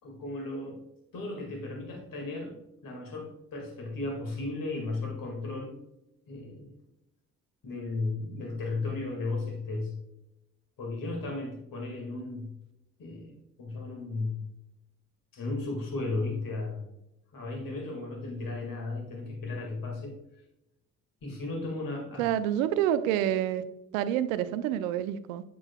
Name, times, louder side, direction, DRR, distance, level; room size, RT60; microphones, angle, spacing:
voice 1, 0.0-0.8 1.1-2.5 2.8-5.8 6.3-6.7 7.6-10.0 10.8-12.5 13.0-14.5 15.3-16.9 17.3-20.2 21.2-22.3, left 3 dB, 55° left, 2.1 m, -35 dB
voice 2, 22.2-23.6 23.9-25.4, right 11 dB, 80° right, 0.6 m, -28 dB
7.9 x 7.0 x 2.3 m
hypercardioid pair, 45°, 39 cm